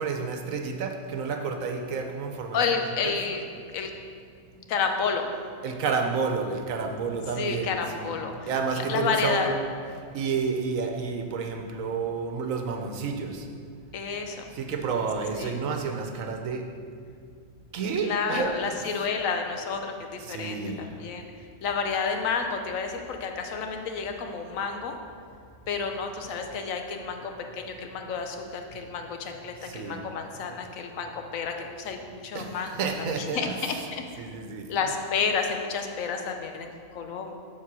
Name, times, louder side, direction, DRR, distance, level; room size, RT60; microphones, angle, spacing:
voice 1, 0.0-3.4 3.6-3.9 5.6-13.5 14.5-16.7 17.7-19.1 20.2-21.0 29.5-30.0 32.3-34.9, right 5 dB, 80° right, 4 dB, 1.2 m, -31 dB
voice 2, 2.5-3.4 3.7-3.9 4.7-5.3 7.4-8.5 8.9-9.5 13.9-14.5 15.4-15.5 18.0-21.3 21.6-25.0 25.7-32.8 33.3-34.2 34.7-37.3, left 5 dB, 80° left, 5 dB, 1.2 m, -30 dB
7.4 x 4.5 x 6.1 m, 2.2 s
omnidirectional pair, 1.4 m